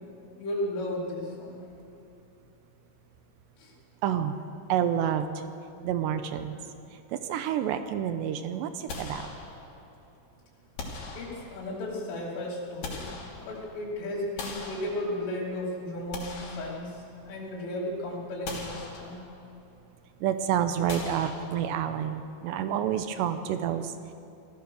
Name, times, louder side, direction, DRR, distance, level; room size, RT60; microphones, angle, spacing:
voice 1, 0.4-1.7 3.6-3.7 11.2-19.3, left 1 dB, 85° left, -6 dB, 5.8 m, -35 dB
voice 2, 4.0-4.4 4.7-5.4 5.8-6.6 6.9-9.3 20.2-24.1, right 9 dB, 80° right, 9 dB, 2.7 m, -29 dB
sound 1, 8.9-9.9 10.8-11.8 12.5-13.8 14.4-15.5 15.9-17.4 17.8-17.9 18.4-19.5 20.9-22.0, left 3 dB, 55° left, 4.6 m, -40 dB
25.5 x 17.0 x 6.4 m, 2.8 s
omnidirectional pair, 5.6 m